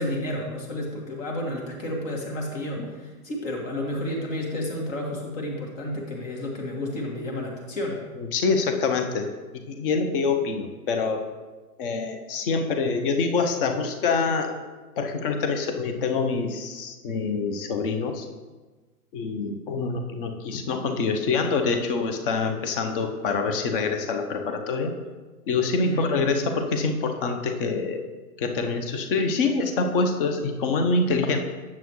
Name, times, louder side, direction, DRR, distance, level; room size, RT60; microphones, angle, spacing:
voice 1, 0.0-8.0 25.8-26.1, left 1 dB, 55° left, -1 dB, 2.1 m, -31 dB
voice 2, 8.2-9.3 9.5-11.2 11.8-14.5 15.0-18.3 19.1-24.9 25.5-28.0 28.4-31.4, left 4 dB, 35° left, 5 dB, 0.8 m, -25 dB
8.8 x 7.1 x 3.1 m, 1.3 s
hypercardioid pair, 135°, 47 cm